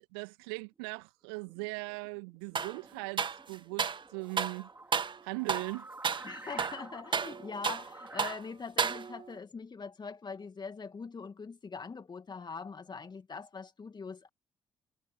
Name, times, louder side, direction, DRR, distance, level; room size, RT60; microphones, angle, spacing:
voice 1, 0.0-5.9, right 33 dB, 70° right, 2.5 m, -40 dB
sound 1, 1.5-8.4, right 2 dB, 20° right, 4.8 m, -51 dB
sound 2, 2.5-2.8 3.2-4.0 4.4-4.6 4.9-5.2 5.5-5.7 6.0-6.3 6.6-7.9 8.2-8.4 8.8-9.3, right 6 dB, 40° right, 1.9 m, -32 dB
voice 2, 6.2-14.3, left 5 dB, 35° left, 2.1 m, -43 dB
figure-of-eight pair, 40°, 13 cm